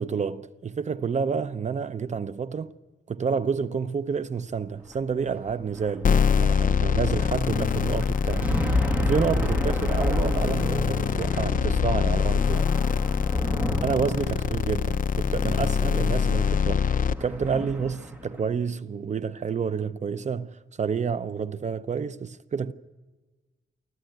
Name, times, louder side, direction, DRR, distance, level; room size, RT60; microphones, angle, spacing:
voice 1, 0.0-2.7 3.1-8.5 9.0-12.7 13.8-22.7, right 6 dB, 35° right, 0.6 m, -29 dB
sound 1, 4.8-18.4, left 1 dB, 10° right, 2.3 m, -31 dB
sound 2, 6.0-17.1, left 6 dB, 40° left, 0.6 m, -24 dB
24.5 x 14.5 x 9.1 m
wide cardioid pair, 145°, 20 cm